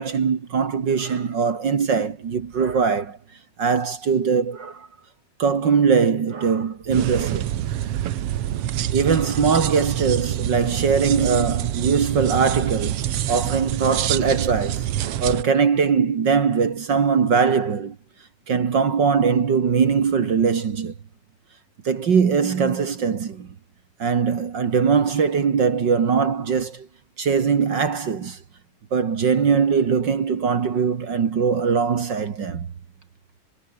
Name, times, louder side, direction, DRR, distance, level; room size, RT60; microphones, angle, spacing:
voice 1, 0.0-3.2 3.6-4.9 5.4-7.6 8.9-13.0 13.3-14.9 15.2-18.0 18.5-20.9 21.8-23.5 24.0-26.9 27.2-28.4 28.9-32.7, right 6 dB, 45° right, 1.9 m, -21 dB
sound 1, 6.9-15.4, right 12 dB, 60° right, 1.9 m, -26 dB
omnidirectional pair, 3.4 m